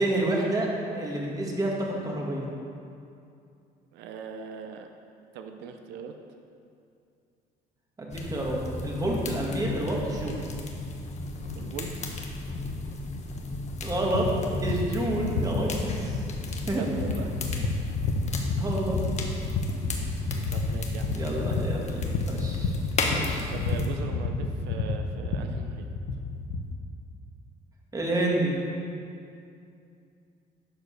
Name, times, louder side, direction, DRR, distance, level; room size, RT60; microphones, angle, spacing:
voice 1, 0.0-2.5 8.0-10.4 13.8-14.3 14.6-16.2 16.7-16.9 18.6-19.0 21.1-22.7 23.1-23.5 27.9-28.6, right 1 dB, 20° right, -2 dB, 2.0 m, -29 dB
voice 2, 3.9-4.9 5.3-6.2 11.5-11.9 16.6-17.4 20.5-21.6 23.5-25.9, right 6 dB, 85° right, 5 dB, 0.7 m, -40 dB
sound 1, 8.1-23.9, left 2 dB, 40° left, 1.3 m, -34 dB
sound 2, 14.1-26.8, left 4 dB, 85° left, 0.8 m, -31 dB
11.0 x 5.3 x 6.3 m, 2.5 s
cardioid pair, 110°, 17 cm